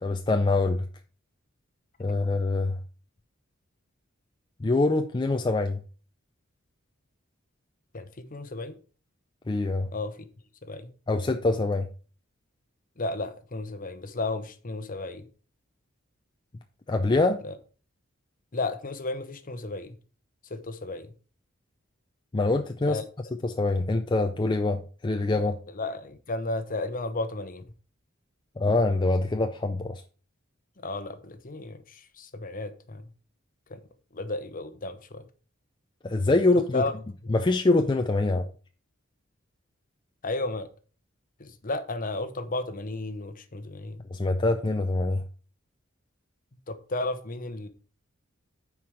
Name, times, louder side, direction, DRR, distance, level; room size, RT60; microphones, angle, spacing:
voice 1, 0.0-0.9 2.0-2.8 4.6-5.8 9.5-9.9 11.1-11.9 16.9-17.4 22.3-23.0 23.4-25.6 28.6-30.0 36.0-36.8 37.3-38.5 44.1-45.2, left 2 dB, 25° left, 6 dB, 0.5 m, -24 dB
voice 2, 7.9-8.8 9.9-10.3 10.6-10.9 13.0-15.3 17.4-17.6 18.5-19.9 20.5-21.1 22.9-23.0 25.7-27.6 30.8-33.0 33.7-33.8 34.1-35.3 36.7-36.9 37.2-37.3 40.2-40.7 41.4-44.0 46.7-47.7, left 2 dB, 45° left, 11 dB, 0.9 m, -33 dB
9.3 x 4.7 x 4.9 m, 0.39 s
head